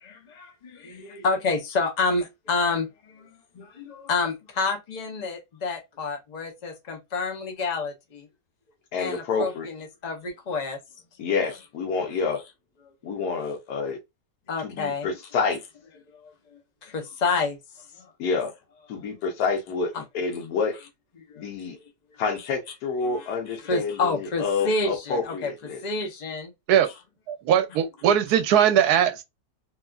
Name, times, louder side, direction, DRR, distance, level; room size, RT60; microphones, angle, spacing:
voice 1, 0.0-3.3 3.5-8.3 9.0-10.8 11.2-11.3 14.5-15.1 16.2-16.3 16.8-17.6 18.0-18.1 21.3-21.8 23.0-23.3 23.6-25.5 25.8-26.5, left 3 dB, 50° left, 0.5 m, -29 dB
voice 2, 8.9-9.7 11.2-12.4 13.0-14.0 14.6-15.6 18.2-18.5 18.9-20.7 21.4-21.8 22.2-25.8, left 5 dB, 85° left, 1.3 m, -28 dB
voice 3, 27.3-29.2, right 9 dB, 80° right, 1.1 m, -20 dB
3.2 x 2.3 x 2.2 m
omnidirectional pair, 1.7 m